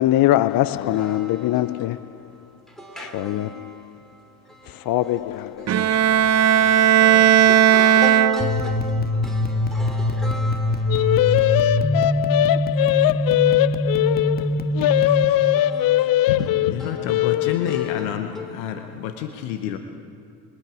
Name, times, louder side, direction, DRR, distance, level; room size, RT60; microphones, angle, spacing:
voice 1, 0.0-2.0 3.1-3.7 4.9-5.7 10.9-18.1, left 14 dB, 55° left, 0.5 m, -21 dB
voice 2, 0.7-2.0 2.8-11.9 15.6-16.5 16.8-17.1 17.6-18.6, right 1 dB, ahead, 3.6 m, -37 dB
Bowed string instrument, 5.7-8.8, right 10 dB, 40° right, 0.6 m, -16 dB
sound 1, 8.4-15.2, left 1 dB, 20° left, 1.3 m, -23 dB
voice 3, 16.3-19.8, left 9 dB, 85° left, 0.9 m, -29 dB
25.0 x 9.9 x 4.9 m
hypercardioid pair, 55°, 43 cm